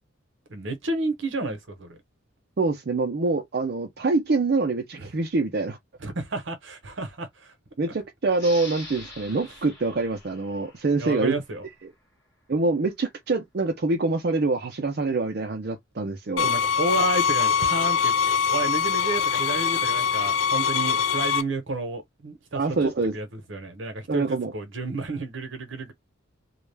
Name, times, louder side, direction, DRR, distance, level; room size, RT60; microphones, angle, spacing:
voice 1, 0.5-2.0 4.9-5.1 6.0-7.5 9.3-9.4 11.0-11.7 16.4-22.6 23.1-25.9, right 2 dB, 70° right, 0.8 m, -31 dB
voice 2, 2.6-5.8 7.8-11.4 12.5-16.5 22.5-23.1 24.1-24.5, right 3 dB, 50° right, 0.5 m, -25 dB
sound 1, 8.3-11.6, left 1 dB, 15° left, 1.1 m, -43 dB
sound 2, 16.4-21.4, left 6 dB, 85° left, 0.4 m, -23 dB
2.3 x 2.1 x 3.2 m
head